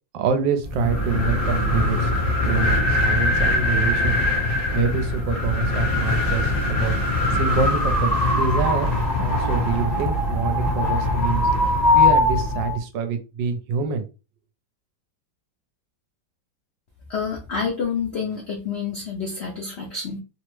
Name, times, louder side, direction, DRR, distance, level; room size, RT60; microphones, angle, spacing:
voice 1, 0.1-2.1 2.4-4.2 4.7-7.0 7.3-8.9 9.2-14.1, right 5 dB, 80° right, 7 dB, 1.3 m, -26 dB
sound 1, 0.6-12.8, left 2 dB, 25° left, 1.1 m, -21 dB
voice 2, 17.1-20.2, left 5 dB, 85° left, 0 dB, 0.5 m, -28 dB
3.3 x 2.0 x 3.0 m, 0.31 s
omnidirectional pair, 2.0 m